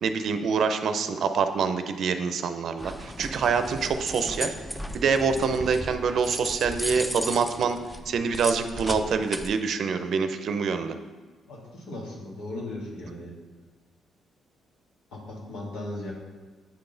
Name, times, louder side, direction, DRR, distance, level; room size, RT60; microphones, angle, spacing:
voice 1, 0.0-4.6 4.9-7.8 8.1-11.0, right 5 dB, 65° right, 9 dB, 0.5 m, -26 dB
sound 1, 2.8-9.5, equal, 5° left, 0.4 m, -36 dB
voice 2, 11.5-13.3 15.1-16.1, left 1 dB, 85° left, -3 dB, 1.7 m, -37 dB
8.6 x 4.0 x 3.9 m, 1.4 s
cardioid pair, 90°, 0 cm